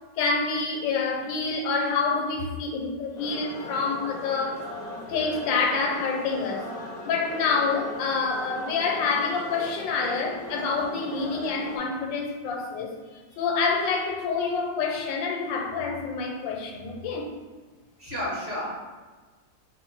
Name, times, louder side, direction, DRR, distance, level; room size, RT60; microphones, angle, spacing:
voice 1, 0.2-4.7 5.1-6.7 7.0-12.9 13.4-17.3, left 4 dB, 90° left, 3 dB, 1.3 m, -27 dB
Buddhist Monks calling to prayer, 3.1-11.8, left 1 dB, 65° left, 0.5 m, -39 dB
voice 2, 11.4-11.7 13.0-13.4 18.0-18.9, equal, 40° right, -7 dB, 1.3 m, -34 dB
4.5 x 2.0 x 4.4 m, 1.4 s
omnidirectional pair, 2.0 m